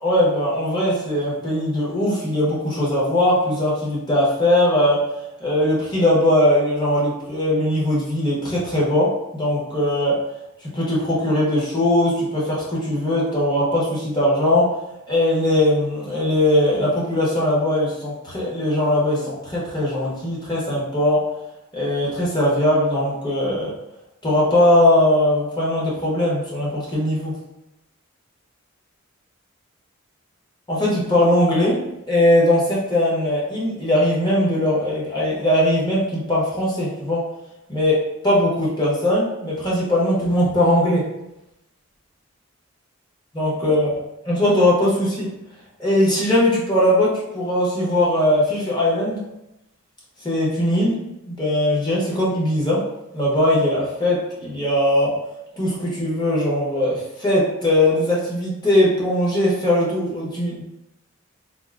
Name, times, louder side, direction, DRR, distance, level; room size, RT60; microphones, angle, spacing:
voice 1, 0.0-5.1 5.4-10.2 10.7-14.7 15.1-21.3 21.7-23.7 24.2-27.3 30.7-31.8 32.1-37.3 37.7-41.0 43.3-43.9 44.2-45.3 45.8-49.2 50.2-51.0 51.2-52.8 53.1-55.1 55.6-60.6, left 1 dB, 20° left, -5 dB, 1.0 m, -20 dB
3.7 x 2.6 x 2.4 m, 0.90 s
head